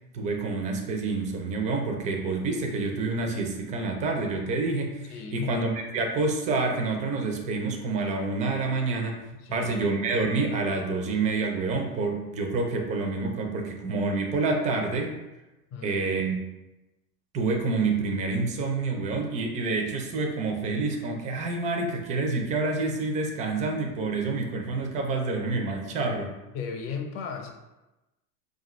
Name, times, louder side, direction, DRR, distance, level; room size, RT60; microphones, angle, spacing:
voice 1, 0.1-9.2 9.5-15.1 15.8-16.4 17.3-26.3, right 3 dB, 15° right, 2 dB, 0.3 m, -28 dB
voice 2, 5.1-5.5 9.4-9.7 15.7-16.0 26.5-27.5, left 6 dB, 45° left, 3 dB, 0.8 m, -35 dB
5.0 x 2.5 x 3.0 m, 1.0 s
hypercardioid pair, 115°, 47 cm